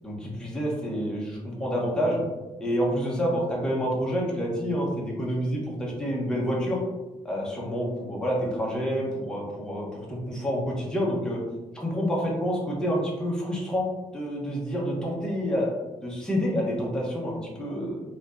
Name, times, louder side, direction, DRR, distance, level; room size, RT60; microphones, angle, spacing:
voice 1, 0.0-2.2 2.6-6.8 7.2-11.4 11.7-15.7 16.0-18.0, equal, 5° left, -4 dB, 0.8 m, -28 dB
4.3 x 2.7 x 2.5 m, 1.1 s
wide cardioid pair, 170°, 12 cm